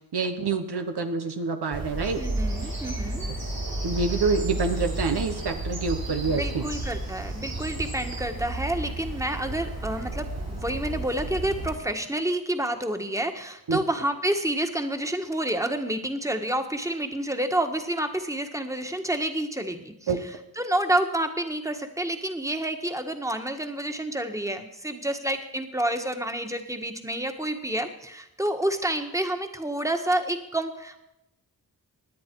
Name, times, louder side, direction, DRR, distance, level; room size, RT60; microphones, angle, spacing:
voice 1, 0.1-2.2 3.8-6.7 13.7-13.8 20.1-20.2, right 4 dB, 90° right, 6 dB, 1.1 m, -27 dB
Bird vocalization bird call bird song, 1.7-11.7, right 1 dB, 70° right, 6.5 m, -32 dB
voice 2, 2.2-3.2 6.2-20.1 20.6-31.0, right 1 dB, 10° right, 6 dB, 1.6 m, -29 dB
17.5 x 10.0 x 4.7 m, 0.88 s
cardioid pair, 40°, 38 cm